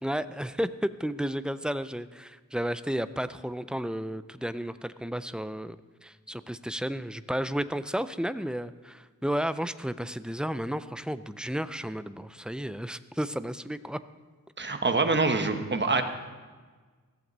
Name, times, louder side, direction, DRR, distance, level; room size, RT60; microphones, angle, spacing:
voice 1, 0.0-5.8 6.0-14.0, equal, 5° right, 13 dB, 0.3 m, -32 dB
voice 2, 14.6-16.0, right 3 dB, 35° right, 6 dB, 1.0 m, -25 dB
15.0 x 14.0 x 4.0 m, 1.4 s
wide cardioid pair, 145°, 33 cm